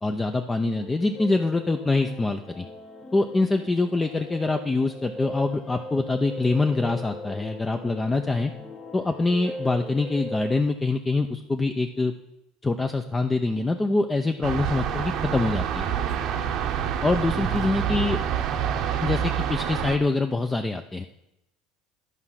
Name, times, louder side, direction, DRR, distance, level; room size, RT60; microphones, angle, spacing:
voice 1, 0.0-2.7 3.1-8.5 8.9-12.1 12.6-15.9 17.0-18.2 19.0-21.0, left 3 dB, 15° left, 5 dB, 0.5 m, -25 dB
sound 1, 0.5-10.6, left 1 dB, 35° left, 1.3 m, -39 dB
sound 2, 14.4-20.0, right 8 dB, 55° right, 0.8 m, -27 dB
11.0 x 4.8 x 5.7 m, 0.86 s
supercardioid pair, 100°, 0 cm